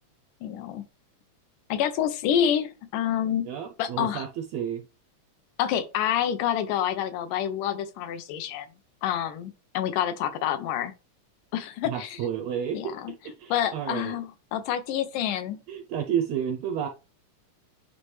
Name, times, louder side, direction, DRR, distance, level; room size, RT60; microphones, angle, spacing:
voice 1, 0.4-0.8 1.7-3.5 3.8-4.3 5.6-8.7 9.0-10.9 11.5-12.2 12.7-13.1 13.5-15.6, left 10 dB, 85° left, 2.3 m, -28 dB
voice 2, 3.5-4.8 11.9-12.9 13.2-14.1 15.7-16.9, right 8 dB, 80° right, 1.5 m, -31 dB
9.4 x 3.3 x 3.2 m
omnidirectional pair, 3.6 m